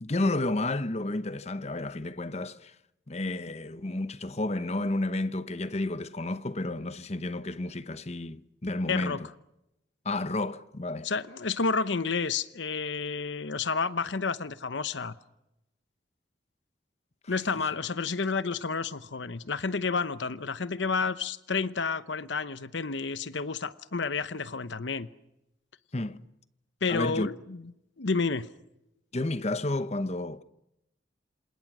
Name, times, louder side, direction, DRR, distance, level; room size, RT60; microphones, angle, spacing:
voice 1, 0.0-2.7 3.1-9.3 10.0-11.1 17.2-17.3 25.9-26.2 26.9-27.3 29.1-30.4, left 2 dB, 35° left, 0.9 m, -31 dB
voice 2, 8.9-9.2 11.0-15.1 17.3-25.1 26.8-27.6 28.0-28.5, left 4 dB, 80° left, 0.9 m, -30 dB
28.0 x 27.0 x 6.2 m
head